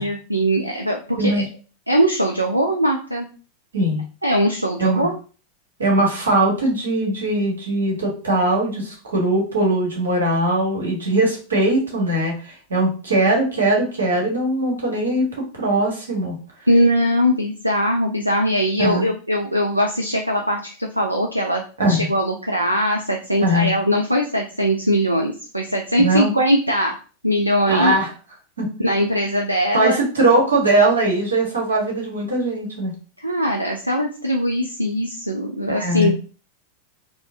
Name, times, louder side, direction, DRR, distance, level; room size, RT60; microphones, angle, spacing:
voice 1, 0.0-1.4 1.9-3.3 4.2-5.2 16.7-21.6 21.9-27.0 27.2-28.0 28.8-30.0 33.2-36.1, equal, 85° right, 2 dB, 0.4 m, -21 dB
voice 2, 3.7-4.0 4.8-5.1 5.8-16.3 18.8-19.1 21.8-22.1 23.4-23.7 26.0-26.3 27.7-28.1 28.6-28.7 29.7-32.9 35.7-36.1, right 1 dB, 70° right, -2 dB, 1.3 m, -20 dB
4.3 x 2.1 x 2.6 m, 0.38 s
figure-of-eight pair, 90°, 0 cm